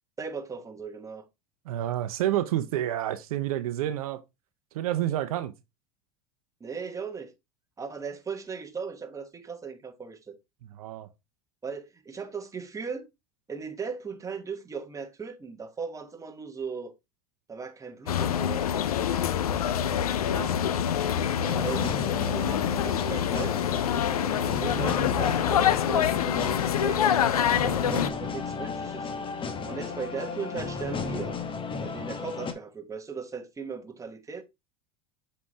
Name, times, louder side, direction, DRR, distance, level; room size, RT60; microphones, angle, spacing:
voice 1, 0.2-1.2 6.6-7.3 7.8-10.4 11.6-13.1 13.5-16.9 17.5-18.9 21.6-23.6 24.5-26.4 26.8-29.1 29.6-31.4 31.8-34.4, right 5 dB, 15° right, 1.1 m, -37 dB
voice 2, 1.7-4.2 4.7-5.5 10.6-11.1 20.2-20.5, right 12 dB, 75° right, 0.7 m, -29 dB
sound 1, 18.1-28.1, left 9 dB, 90° left, 0.5 m, -26 dB
sound 2, 21.4-32.5, left 5 dB, 30° left, 1.1 m, -34 dB
7.2 x 4.2 x 3.2 m
hypercardioid pair, 90°, 18 cm